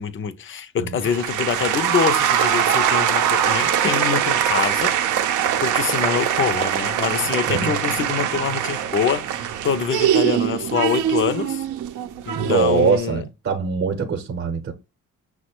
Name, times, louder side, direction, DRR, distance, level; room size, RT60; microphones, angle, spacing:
voice 1, 0.0-4.9 5.6-11.6 12.3-13.2, left 7 dB, 40° left, 0.5 m, -25 dB
sound 1, 1.0-13.0, right 9 dB, 80° right, 0.6 m, -22 dB
voice 2, 12.3-14.7, right 5 dB, 45° right, 0.8 m, -22 dB
5.7 x 2.1 x 4.4 m
cardioid pair, 90°, 30 cm